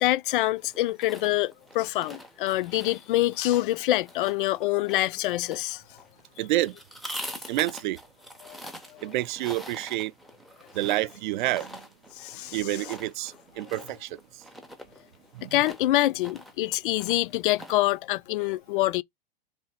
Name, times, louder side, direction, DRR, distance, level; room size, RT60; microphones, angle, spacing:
voice 1, 0.0-5.8 8.4-8.6 8.9-9.0 12.2-12.6 15.5-19.0, left 16 dB, 60° left, 0.4 m, -26 dB
sound 1, 0.6-18.0, equal, ahead, 0.5 m, -45 dB
voice 2, 6.4-6.8 7.5-8.0 9.0-10.1 10.7-11.8 12.5-14.4 15.3-15.6, right 16 dB, 55° right, 0.4 m, -29 dB
3.4 x 2.8 x 4.1 m
hypercardioid pair, 135°, 29 cm